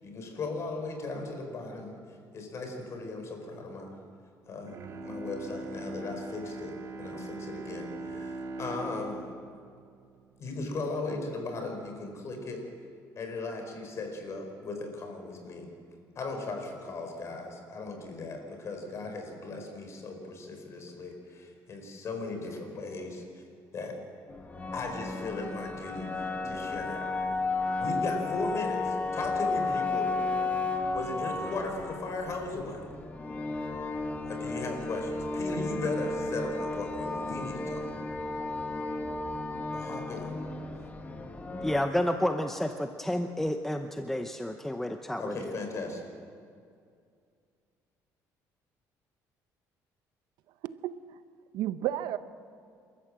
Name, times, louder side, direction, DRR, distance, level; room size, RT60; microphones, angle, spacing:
voice 1, 0.0-2.0 2.3-4.0 4.5-4.8 5.0-9.2 10.4-12.6 13.2-15.7 16.1-23.2 23.7-24.0 24.7-27.4 27.8-30.1 30.9-32.8 34.2-37.8 39.7-40.3 45.2-46.1, left 3 dB, 45° left, 4 dB, 4.8 m, -37 dB
Bowed string instrument, 4.6-10.8 11.2-11.3, right 2 dB, 45° right, 2.2 m, -41 dB
sound 1, 24.3-41.8, left 3 dB, 20° left, 1.8 m, -33 dB
voice 2, 41.6-45.5, left 1 dB, 5° left, 6 dB, 0.8 m, -30 dB
voice 3, 50.6-51.2 51.5-52.2, right 12 dB, 80° right, 12 dB, 0.9 m, -32 dB
28.5 x 13.5 x 7.6 m, 2.3 s
cardioid pair, 130°, 7 cm